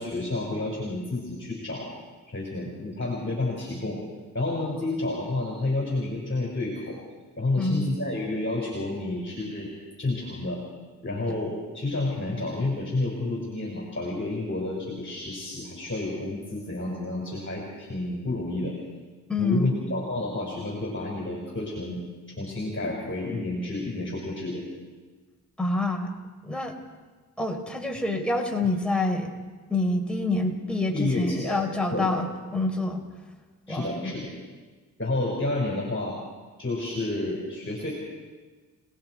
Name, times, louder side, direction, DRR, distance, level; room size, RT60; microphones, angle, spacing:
voice 1, 0.0-1.9 2.3-4.0 4.3-7.0 7.4-9.7 10.0-10.6 11.0-18.7 19.4-22.0 22.4-24.6 30.9-31.6 31.9-32.2 33.7-34.3 35.0-36.2 36.6-37.9, left 2 dB, 30° left, -2 dB, 6.0 m, -30 dB
voice 2, 7.6-7.9 19.3-19.7 25.6-26.1 26.4-26.7 27.4-29.3 29.7-33.0 33.7-34.1, left 2 dB, 5° left, 1 dB, 4.2 m, -27 dB
30.0 x 19.5 x 4.9 m, 1.4 s
cardioid pair, 65°, 38 cm